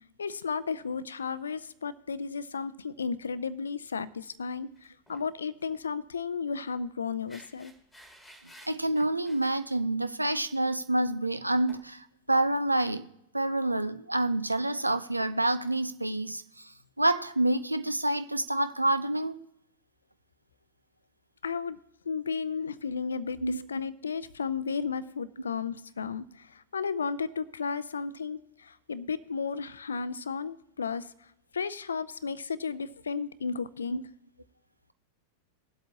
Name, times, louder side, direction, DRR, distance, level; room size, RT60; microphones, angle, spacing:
voice 1, 0.2-7.7 21.4-21.8 22.1-31.1 31.5-34.0, left 5 dB, 70° left, 17 dB, 0.5 m, -34 dB
sound 1, 4.7-5.3 5.6-5.8 7.3-9.6 11.7-11.8, right 1 dB, ahead, 2.0 m, -53 dB
voice 2, 8.7-13.1 13.3-16.4 17.0-19.4 23.4-23.6, right 1 dB, 85° right, 12 dB, 0.5 m, -27 dB
20.0 x 8.0 x 2.8 m, 0.79 s
figure-of-eight pair, 90°, 0 cm